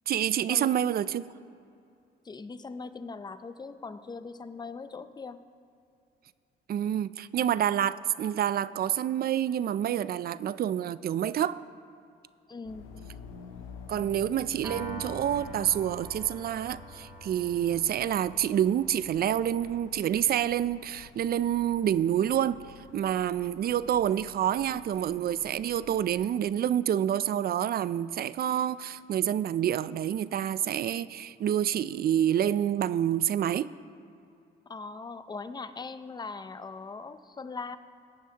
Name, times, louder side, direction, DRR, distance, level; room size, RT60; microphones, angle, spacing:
voice 1, 0.1-1.2 6.7-11.6 13.9-22.6 22.9-33.7, right 10 dB, 50° right, 0.4 m, -28 dB
voice 2, 2.2-5.4 12.5-12.9 34.7-37.8, left 4 dB, 20° left, 0.5 m, -40 dB
sound 1, 12.6-26.4, left 6 dB, 80° left, 0.9 m, -49 dB
Piano, 14.6-21.0, right 1 dB, 15° right, 2.3 m, -46 dB
17.5 x 10.0 x 2.9 m
cardioid pair, 90°, 20 cm